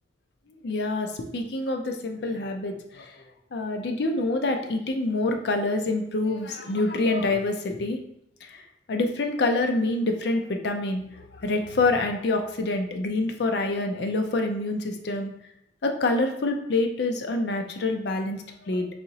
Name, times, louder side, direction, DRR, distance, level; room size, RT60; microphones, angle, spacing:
voice 1, 0.6-3.1 3.5-8.0 8.4-15.3 15.8-18.9, left 2 dB, 65° left, 4 dB, 0.5 m, -26 dB
4.1 x 2.9 x 2.7 m, 0.76 s
head